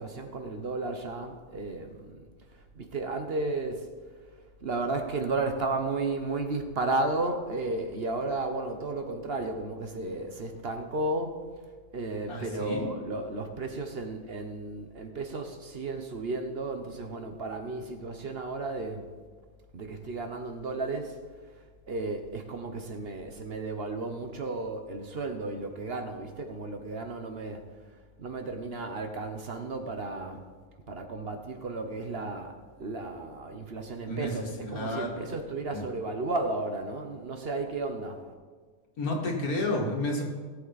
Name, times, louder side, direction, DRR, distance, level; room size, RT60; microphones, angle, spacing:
voice 1, 0.0-2.2 2.5-3.9 4.6-11.5 11.9-19.0 19.7-21.2 21.5-27.6 28.2-30.5 30.9-38.3, right 2 dB, 45° right, 5 dB, 1.1 m, -33 dB
voice 2, 12.3-12.9 34.1-35.2 35.7-35.8 39.0-40.2, left 1 dB, 85° left, 0 dB, 2.5 m, -31 dB
17.5 x 8.1 x 4.1 m, 1.5 s
omnidirectional pair, 1.5 m